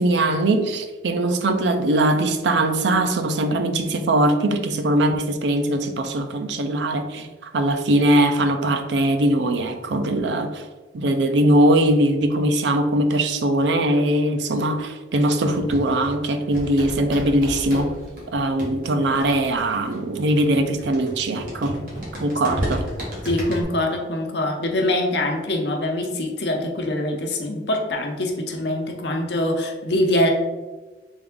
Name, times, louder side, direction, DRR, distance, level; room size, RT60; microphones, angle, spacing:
voice 1, 0.0-10.6 10.9-17.9 18.3-21.8 22.2-22.9, right 1 dB, 80° right, 8 dB, 0.5 m, -21 dB
sound 1, 15.5-23.6, equal, 50° right, 1.3 m, -33 dB
voice 2, 23.2-30.3, left 1 dB, 75° left, 2 dB, 0.7 m, -24 dB
3.6 x 3.4 x 3.6 m, 1.2 s
head